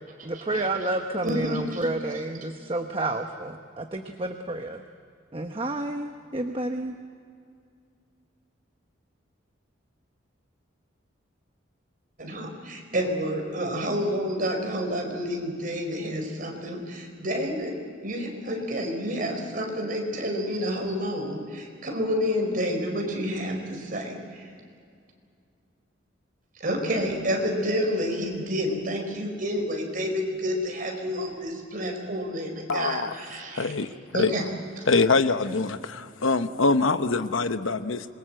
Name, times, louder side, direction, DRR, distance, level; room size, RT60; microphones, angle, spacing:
voice 1, 0.2-4.8 5.3-6.9, right 2 dB, 30° right, 5 dB, 1.1 m, -30 dB
voice 2, 1.2-1.8 12.2-24.5 26.6-33.7 34.1-34.4 34.8-34.9, equal, 45° right, 2 dB, 4.9 m, -29 dB
voice 3, 32.7-33.1 33.5-34.3 34.9-38.1, left 3 dB, 90° left, 10 dB, 1.0 m, -24 dB
26.5 x 22.5 x 7.8 m, 2.3 s
head